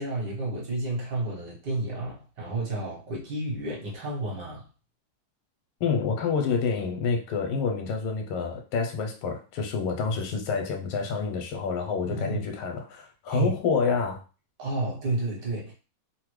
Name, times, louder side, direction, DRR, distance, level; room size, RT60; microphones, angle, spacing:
voice 1, 0.0-4.7 12.1-12.5 13.3-13.5 14.6-15.7, right 2 dB, 60° right, -3 dB, 1.6 m, -31 dB
voice 2, 5.8-14.2, left 5 dB, 85° left, 4 dB, 1.6 m, -28 dB
3.8 x 2.1 x 3.1 m, 0.33 s
omnidirectional pair, 2.4 m